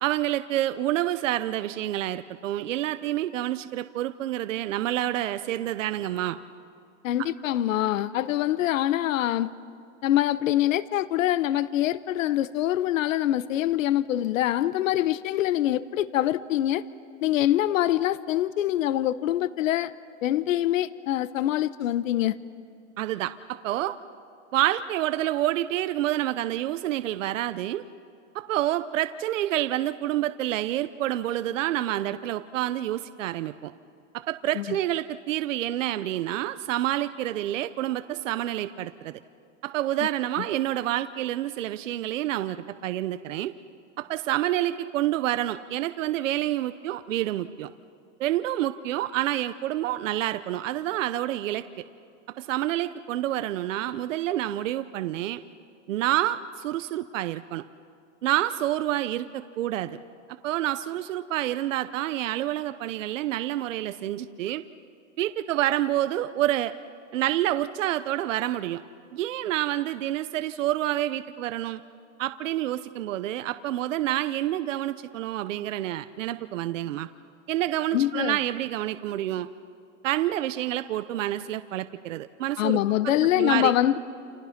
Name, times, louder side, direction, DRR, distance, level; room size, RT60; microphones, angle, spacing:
voice 1, 0.0-6.4 23.0-24.0 24.5-27.8 28.3-33.7 34.3-39.2 39.6-43.5 44.0-47.7 48.2-51.6 52.4-55.4 55.9-57.6 58.2-60.0 60.4-64.6 65.2-66.7 67.1-68.8 69.1-71.8 72.2-77.1 77.5-79.5 80.0-82.8 83.0-83.7, right 13 dB, 70° right, 0.8 m, -28 dB
voice 2, 7.0-9.5 10.0-16.8 17.2-19.9 20.2-22.4 34.5-34.8 77.9-78.4 82.6-84.0, left 13 dB, 80° left, 0.9 m, -24 dB
29.5 x 28.5 x 5.9 m
supercardioid pair, 165°, 39 cm